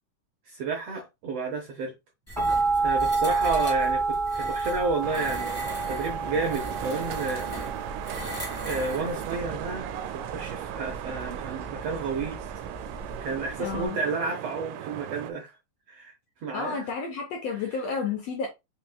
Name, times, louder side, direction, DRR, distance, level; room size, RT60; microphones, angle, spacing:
voice 1, 0.5-1.9 2.8-7.5 8.7-12.4 13.2-15.6 15.9-16.1 16.4-16.9, right 3 dB, 70° right, 1.6 m, -31 dB
sound 1, 2.3-9.3, equal, 10° left, 0.7 m, -40 dB
sound 2, 2.3-13.9, right 4 dB, 15° right, 1.2 m, -30 dB
sound 3, 5.0-15.3, right 12 dB, 90° right, 2.2 m, -37 dB
voice 2, 13.6-14.0 16.5-18.5, left 5 dB, 75° left, 1.6 m, -31 dB
5.2 x 3.6 x 2.3 m
omnidirectional pair, 3.8 m